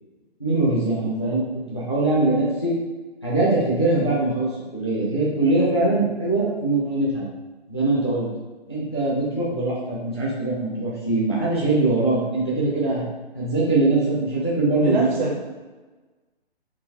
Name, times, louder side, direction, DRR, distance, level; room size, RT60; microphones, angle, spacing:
voice 1, 0.4-1.4 1.7-2.7 3.2-7.2 7.7-8.3 8.7-13.0 13.3-15.1, right 2 dB, 25° left, -6 dB, 0.4 m, -22 dB
voice 2, 14.8-15.4, right 2 dB, 50° right, -3 dB, 0.5 m, -26 dB
3.8 x 2.6 x 2.5 m, 1.3 s
hypercardioid pair, 165°, 32 cm